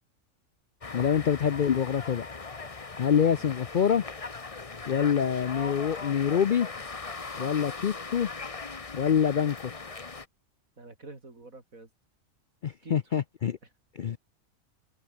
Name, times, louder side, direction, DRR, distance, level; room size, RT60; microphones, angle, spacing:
sound 1, 0.8-10.3, left 4 dB, 25° left, 1.1 m, -39 dB
voice 1, 0.9-2.3 3.0-4.0 4.9-6.7 7.4-8.3 8.9-9.7 12.6-13.6 14.0-14.2, left 8 dB, 55° left, 0.5 m, -25 dB
voice 2, 10.8-11.9 12.8-13.1 13.6-13.7, right 3 dB, 80° right, 4.8 m, -48 dB
omnidirectional pair, 1.4 m